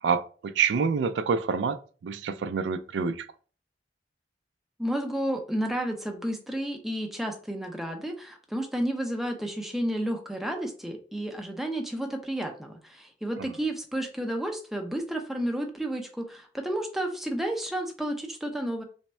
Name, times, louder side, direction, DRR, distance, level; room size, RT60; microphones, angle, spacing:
voice 1, 0.0-3.3 13.4-13.5, right 6 dB, 75° right, 0.3 m, -27 dB
voice 2, 4.8-18.8, right 1 dB, ahead, 0.5 m, -31 dB
3.4 x 2.1 x 4.2 m
head